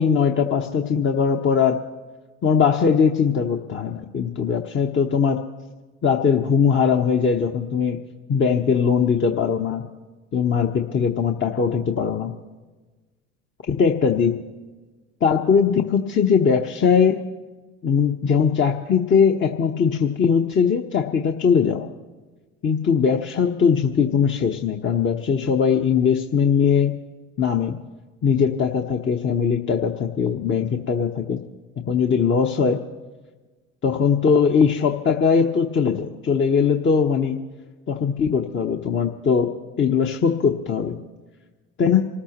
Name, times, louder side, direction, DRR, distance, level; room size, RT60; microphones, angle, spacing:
voice 1, 0.0-1.8 2.4-5.4 6.0-8.0 8.3-9.8 10.3-12.3 13.7-14.3 15.2-17.2 17.8-21.9 22.6-26.9 27.4-27.8 28.2-31.4 31.9-32.8 33.8-37.4 37.9-41.0 41.8-42.0, left 6 dB, 35° left, 2 dB, 1.0 m, -20 dB
27.0 x 14.5 x 3.0 m, 1.3 s
hypercardioid pair, 70°, 36 cm